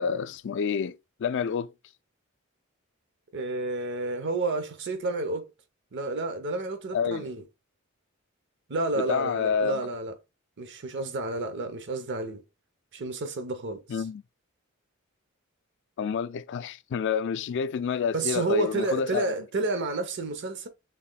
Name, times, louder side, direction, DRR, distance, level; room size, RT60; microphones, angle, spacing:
voice 1, 0.0-1.7 6.9-7.3 8.9-9.8 13.9-14.2 16.0-19.3, left 6 dB, 60° left, 0.3 m, -28 dB
voice 2, 3.3-5.5 5.9-7.4 8.7-10.1 10.6-12.4 12.9-14.1 18.1-20.7, right 3 dB, 60° right, 0.7 m, -30 dB
5.7 x 3.6 x 2.2 m
head